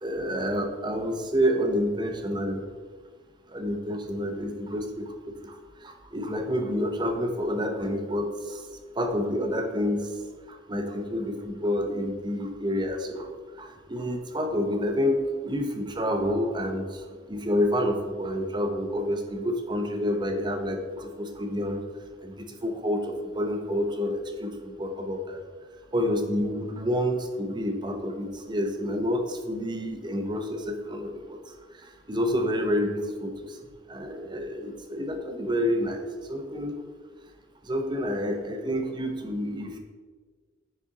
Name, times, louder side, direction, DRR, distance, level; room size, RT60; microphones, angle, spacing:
voice 1, 0.0-2.6 3.5-5.1 5.4-5.6 5.8-8.6 9.0-10.1 10.5-13.3 13.6-17.0 17.3-21.8 22.2-24.1 24.4-25.4 25.9-31.4 32.1-33.5 33.9-36.8 37.7-39.8, equal, 20° right, 5 dB, 0.7 m, -28 dB
9.6 x 4.2 x 3.7 m, 1.6 s
head